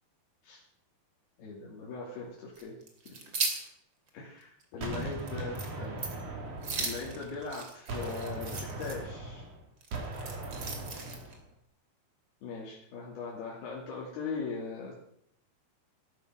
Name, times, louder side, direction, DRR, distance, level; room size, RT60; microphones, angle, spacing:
voice 1, 1.4-2.8 3.1-3.2 4.1-6.0 6.8-9.5 12.4-14.9, left 4 dB, 75° left, -4 dB, 4.6 m, -40 dB
sound 1, 2.6-3.7 4.1-4.2 4.6-4.7 5.0-5.3 5.6-5.7 6.0-6.2 6.6-9.0 9.8-11.3, right 4 dB, 35° right, 2.6 m, -37 dB
Gunshot gunfire, 4.8-7.5 7.9-11.4, right 2 dB, 50° right, 4.2 m, -39 dB
14.0 x 13.0 x 6.3 m, 0.72 s
omnidirectional pair, 4.6 m